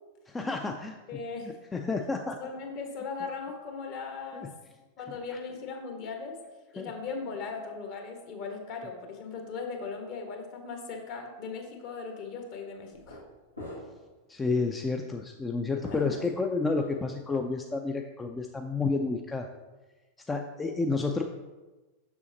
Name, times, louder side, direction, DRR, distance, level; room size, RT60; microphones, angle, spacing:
voice 1, 0.3-1.0 1.7-2.4 4.3-4.5 6.8-6.9 14.3-19.5 20.3-21.2, left 3 dB, 15° left, 3 dB, 0.4 m, -30 dB
voice 2, 1.1-1.5 2.2-4.5 5.0-6.3 6.7-13.2 15.9-16.2, left 4 dB, 45° left, 3 dB, 1.2 m, -38 dB
sound 1, 11.8-12.0 12.9-13.3 13.5-14.1 14.5-14.7 15.8-16.9, left 1 dB, 85° left, 1.7 m, -44 dB
6.9 x 6.2 x 2.7 m, 1.2 s
figure-of-eight pair, 90°, 0 cm